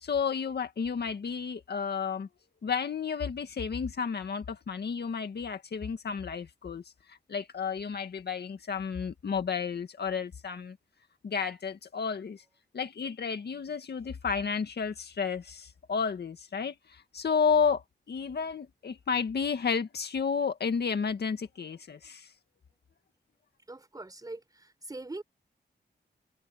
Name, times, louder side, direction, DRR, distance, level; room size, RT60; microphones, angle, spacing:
voice 1, 0.0-2.3 2.6-6.8 7.1-10.8 11.2-12.4 12.7-22.3, left 6 dB, 65° left, 2.0 m, -32 dB
voice 2, 23.7-25.2, right 2 dB, 20° right, 4.1 m, -42 dB
wide cardioid pair, 165°, 18 cm